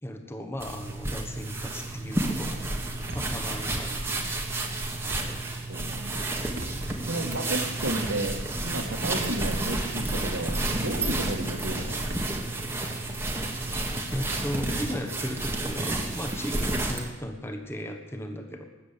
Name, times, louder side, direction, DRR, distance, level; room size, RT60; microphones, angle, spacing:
voice 1, 0.0-2.7 3.1-4.0 14.1-18.6, equal, 10° left, 5 dB, 1.3 m, -36 dB
sound 1, 0.6-17.1, right 2 dB, 10° right, 1.5 m, -31 dB
sound 2, 3.1-3.5 4.9-5.4 5.9-7.1 7.4-8.7 9.4-10.0 10.3-11.3 12.1-12.3 12.6-12.7 13.1-14.6, right 2 dB, 50° right, 1.4 m, -43 dB
voice 2, 5.7-6.3 7.0-12.1, right 1 dB, 75° right, 4 dB, 1.9 m, -33 dB
20.0 x 7.6 x 8.5 m, 1.2 s
head